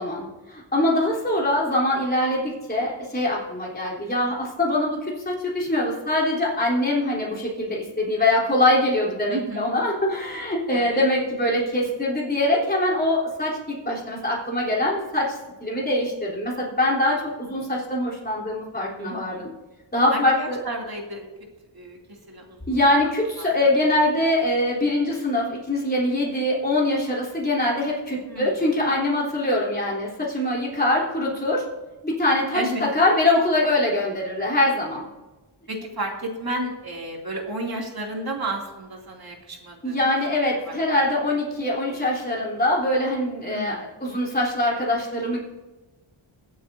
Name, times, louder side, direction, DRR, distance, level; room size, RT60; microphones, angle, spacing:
voice 1, 0.0-19.5 19.9-20.6 22.7-31.6 32.0-32.6 32.9-35.1 39.8-45.4, left 1 dB, 20° left, -4 dB, 3.5 m, -23 dB
voice 2, 9.3-9.8 10.7-11.1 19.0-19.5 20.1-21.3 21.7-23.1 23.4-23.7 28.2-28.6 32.5-33.0 35.7-40.0 40.7-40.8 41.1-41.2 43.4-43.9, right 1 dB, 50° right, 0 dB, 2.8 m, -33 dB
23.0 x 8.4 x 2.7 m, 1.1 s
wide cardioid pair, 100°, 49 cm